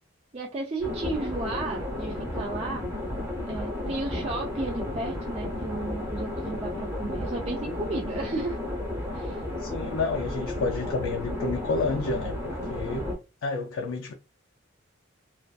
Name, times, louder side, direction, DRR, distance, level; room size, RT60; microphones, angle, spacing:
voice 1, 0.3-2.8 3.5-8.6 9.1-9.4, right 2 dB, 30° right, 0.3 m, -33 dB
sound 1, 0.8-13.1, left 1 dB, 10° right, 0.8 m, -33 dB
voice 2, 9.6-13.1 13.4-14.1, left 3 dB, 80° left, 0.4 m, -30 dB
2.4 x 2.4 x 2.2 m
head